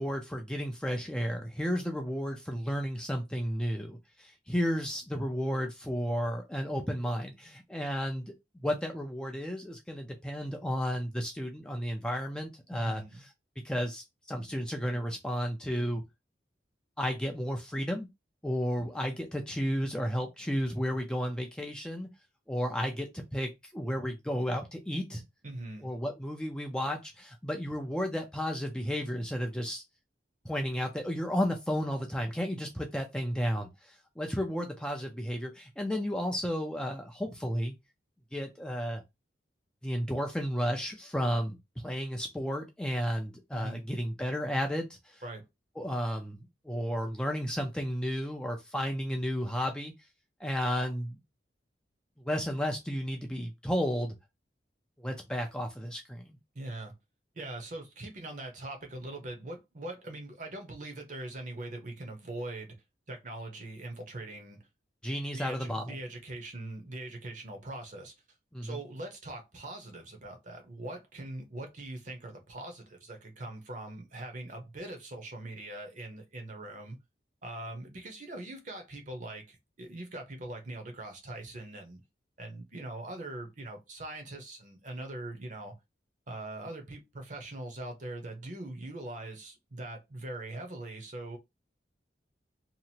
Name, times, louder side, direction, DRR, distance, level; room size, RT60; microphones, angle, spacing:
voice 1, 0.0-13.3 13.6-16.0 17.0-18.1 18.4-22.1 22.5-25.2 25.8-29.8 30.4-37.7 38.3-39.0 39.8-45.2 45.8-49.9 50.4-51.2 52.2-54.1 55.0-56.4 65.0-66.0 68.5-68.8, equal, 5° left, 0.4 m, -33 dB
voice 2, 12.7-13.2 25.4-25.9 43.5-43.8 45.2-45.4 56.5-56.9 57.3-62.8 63.1-64.6 65.3-68.1 68.6-77.0 77.4-82.0 82.4-85.7 86.3-91.4, right 2 dB, 45° right, 0.8 m, -42 dB
2.8 x 2.5 x 2.8 m
head